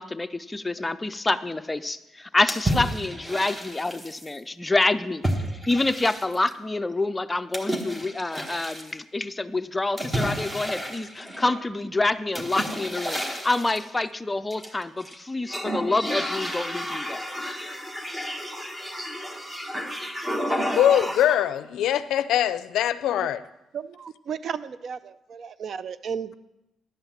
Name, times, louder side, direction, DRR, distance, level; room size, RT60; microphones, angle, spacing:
voice 1, 0.0-5.2 5.7-17.2, left 2 dB, 15° left, 0.5 m, -27 dB
sound 1, 2.5-4.3 5.2-6.5 7.5-8.9 10.0-11.7 12.3-13.9 14.5-15.1 15.5-21.5, equal, 10° right, 1.4 m, -31 dB
voice 2, 20.8-23.4, left 11 dB, 80° left, 0.4 m, -22 dB
voice 3, 23.7-26.3, right 7 dB, 55° right, 0.5 m, -34 dB
11.0 x 5.6 x 7.3 m
cardioid pair, 90°, 0 cm